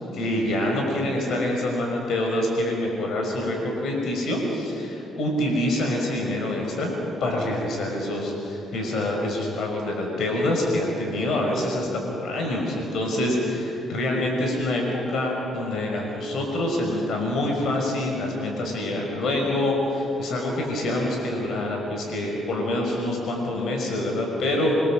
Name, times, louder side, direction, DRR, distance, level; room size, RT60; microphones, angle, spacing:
voice 1, 0.1-6.9 7.2-24.8, left 1 dB, 70° left, 1 dB, 6.0 m, -26 dB
26.5 x 26.5 x 7.7 m, 2.7 s
cardioid pair, 75°, 0 cm